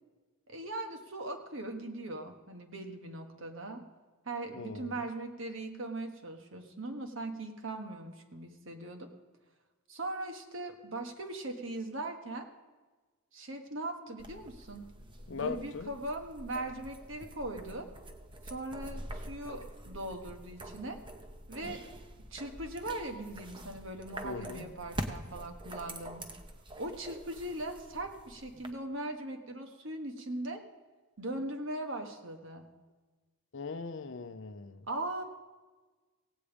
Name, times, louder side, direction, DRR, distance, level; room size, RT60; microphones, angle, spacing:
voice 1, 0.5-3.8 4.2-9.1 9.9-12.5 13.3-14.8 15.3-17.9 18.4-21.0 21.5-21.8 22.3-26.3 26.8-30.6 31.2-32.7 34.9-35.2, right 2 dB, 60° right, 5 dB, 1.4 m, -40 dB
voice 2, 4.6-4.9 15.3-15.9 24.2-24.7 33.5-34.8, left 4 dB, 60° left, 12 dB, 0.6 m, -40 dB
sound 1, 14.2-28.7, right 1 dB, 20° right, 0.8 m, -45 dB
17.0 x 8.5 x 5.1 m, 1.3 s
head